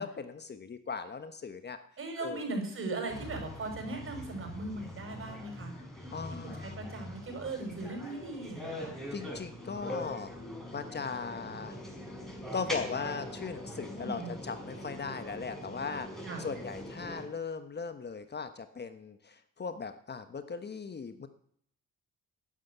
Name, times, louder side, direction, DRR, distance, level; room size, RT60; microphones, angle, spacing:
voice 1, 0.0-1.8 2.2-2.4 6.1-6.8 9.1-10.3 10.7-11.8 12.5-21.3, left 5 dB, 35° left, 10 dB, 1.2 m, -38 dB
voice 2, 2.0-5.7 6.4-9.0 14.0-14.3 16.2-16.5, right 2 dB, 45° right, 5 dB, 5.6 m, -38 dB
sound 1, 3.1-17.3, equal, ahead, 5.5 m, -42 dB
13.0 x 9.8 x 9.5 m, 0.66 s
cardioid pair, 90°, 30 cm